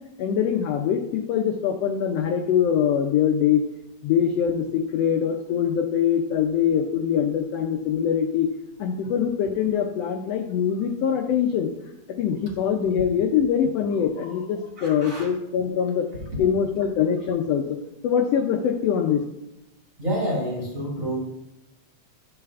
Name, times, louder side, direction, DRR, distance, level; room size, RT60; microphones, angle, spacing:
voice 1, 0.2-3.6 4.0-8.5 8.8-11.7 12.2-16.1 16.4-17.8 18.0-19.2, left 8 dB, 80° left, 3 dB, 1.5 m, -23 dB
voice 2, 14.8-15.3 20.0-21.2, equal, 30° right, -5 dB, 2.1 m, -28 dB
10.5 x 6.6 x 2.4 m, 0.89 s
omnidirectional pair, 3.4 m